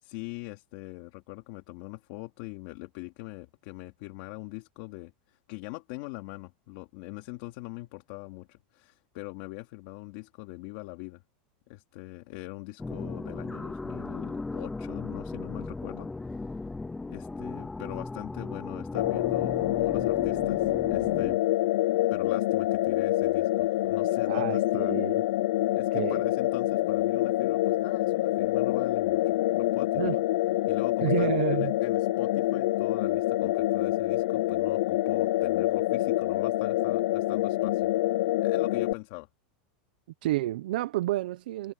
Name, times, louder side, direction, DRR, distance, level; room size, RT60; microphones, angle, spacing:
voice 1, 0.0-11.2 11.7-16.6 17.1-21.4 22.1-24.9 25.7-30.1 30.7-37.9 38.4-39.3, left 21 dB, 45° left, 2.7 m, -42 dB
sound 1, 12.8-21.4, left 3 dB, 5° left, 0.4 m, -37 dB
sound 2, 18.9-38.9, left 16 dB, 60° left, 0.4 m, -26 dB
voice 2, 24.3-25.2 25.9-26.3 30.0-30.2 31.0-31.7 40.2-41.7, right 15 dB, 70° right, 0.7 m, -30 dB
supercardioid pair, 175°, 5 cm